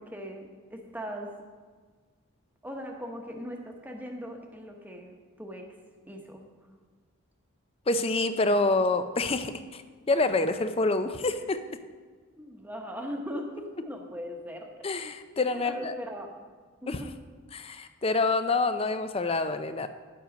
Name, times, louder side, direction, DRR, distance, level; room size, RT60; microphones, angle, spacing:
voice 1, 0.0-1.3 2.6-5.7 6.0-6.4 12.4-14.7 15.5-16.4 16.8-17.1, equal, 10° right, 2 dB, 1.0 m, -39 dB
voice 2, 7.9-9.8 10.1-11.6 14.8-15.9 16.9-17.0 17.5-19.9, left 3 dB, 25° left, 10 dB, 0.5 m, -27 dB
10.5 x 7.8 x 5.1 m, 1.5 s
head